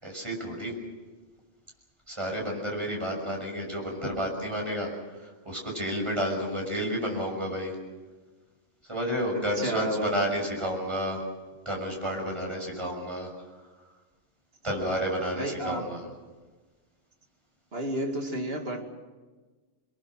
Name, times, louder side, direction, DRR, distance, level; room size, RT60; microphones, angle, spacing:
voice 1, 0.0-0.7 2.1-4.9 5.2-7.8 8.9-11.2 11.6-13.3 14.6-16.0, equal, 25° right, 0 dB, 6.3 m, -31 dB
voice 2, 9.3-10.1 15.4-15.9 17.7-18.8, right 1 dB, 60° right, 3 dB, 2.6 m, -31 dB
26.0 x 21.5 x 6.3 m, 1.3 s
omnidirectional pair, 1.2 m